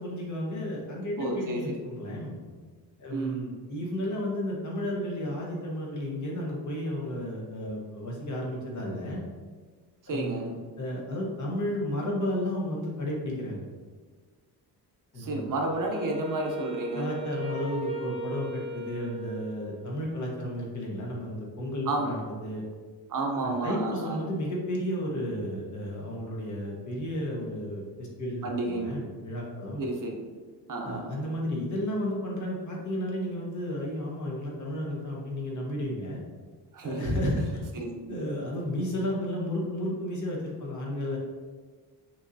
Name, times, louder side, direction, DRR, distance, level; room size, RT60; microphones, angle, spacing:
voice 1, 0.0-2.4 3.0-9.2 10.1-13.6 15.1-15.5 16.9-22.6 23.4-29.8 30.8-36.2 36.8-37.6 38.1-41.2, left 1 dB, 45° left, -2 dB, 1.1 m, -33 dB
voice 2, 1.2-1.8 3.1-3.4 10.0-10.5 15.2-17.1 21.9-22.1 23.1-24.2 28.4-29.0 29.8-30.2 30.7-31.2 36.7-37.2 37.7-38.2, right 2 dB, 50° right, 1 dB, 0.7 m, -31 dB
Wind instrument woodwind instrument, 15.7-20.1, right 2 dB, 15° right, 0.4 m, -37 dB
6.0 x 2.8 x 2.6 m, 1.5 s
wide cardioid pair, 145°, 40 cm